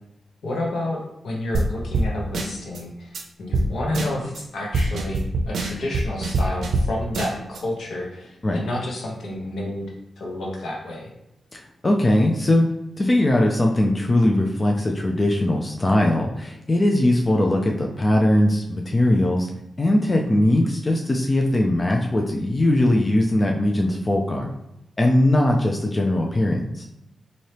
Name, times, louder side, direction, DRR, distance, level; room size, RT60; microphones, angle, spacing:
voice 1, 0.4-11.1, left 1 dB, 80° left, -1 dB, 1.0 m, -30 dB
sound 1, 1.5-1.7 1.9-2.1 2.3-2.8 3.1-3.2 3.5-3.7 3.9-4.4 4.7-6.9 7.1-7.6, right 2 dB, 85° right, 0.5 m, -23 dB
voice 2, 11.5-12.7 13.0-19.5 19.8-24.5 25.0-26.8, left 1 dB, 25° left, 1 dB, 0.4 m, -20 dB
4.2 x 2.7 x 3.3 m, 0.85 s
wide cardioid pair, 145°, 0 cm